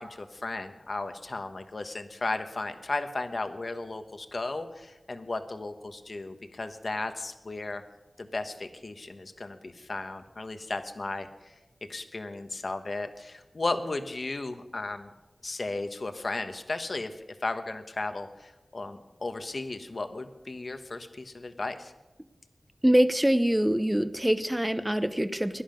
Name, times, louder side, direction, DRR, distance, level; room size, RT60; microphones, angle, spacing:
voice 1, 0.0-7.8 8.2-11.5 11.9-15.1 15.4-21.9, left 2 dB, 55° left, 8 dB, 1.2 m, -35 dB
voice 2, 22.8-25.6, equal, 10° right, 11 dB, 0.9 m, -24 dB
17.5 x 11.5 x 5.2 m, 1.1 s
wide cardioid pair, 80°, 0 cm